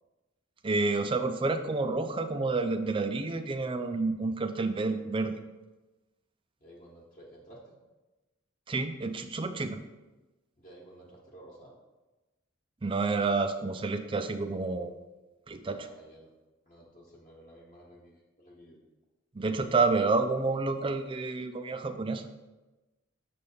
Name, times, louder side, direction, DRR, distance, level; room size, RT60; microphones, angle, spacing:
voice 1, 0.6-5.4 8.7-9.8 12.8-14.9 15.5-15.9 19.3-22.3, right 3 dB, 25° right, 8 dB, 0.4 m, -29 dB
voice 2, 6.6-7.8 10.6-11.7 15.7-16.3 16.6-18.8, right 1 dB, 40° left, -4 dB, 1.2 m, -53 dB
6.7 x 3.5 x 5.4 m, 1.1 s
head